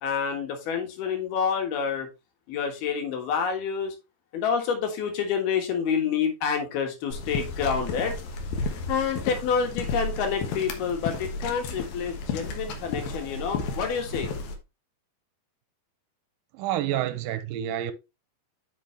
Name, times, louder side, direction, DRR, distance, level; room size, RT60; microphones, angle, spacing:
voice 1, 0.0-2.1 2.5-4.0 4.3-8.1 8.9-14.3, left 6 dB, 90° left, 3.6 m, -28 dB
sound 1, 7.1-14.6, left 3 dB, 75° left, 2.9 m, -33 dB
voice 2, 16.5-17.9, right 12 dB, 80° right, 2.2 m, -28 dB
8.4 x 5.7 x 3.2 m
omnidirectional pair, 4.3 m